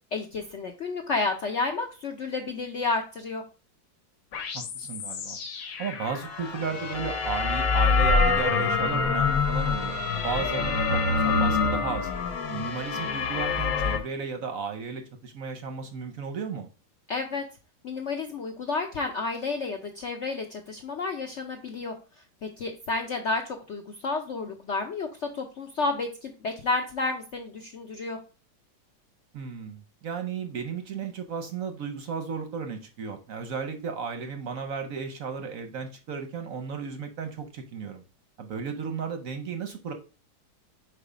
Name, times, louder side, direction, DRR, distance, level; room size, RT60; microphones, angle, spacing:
voice 1, 0.1-3.4 17.1-17.4 17.8-21.9 22.4-28.2, left 3 dB, 80° left, 4 dB, 0.6 m, -31 dB
sound 1, 4.3-14.0, left 4 dB, 55° left, 1.0 m, -26 dB
voice 2, 4.5-5.4 5.8-12.1 12.5-16.7 29.3-38.0 38.4-39.9, right 5 dB, 60° right, 6 dB, 0.9 m, -34 dB
4.8 x 4.7 x 4.9 m, 0.35 s
omnidirectional pair, 2.1 m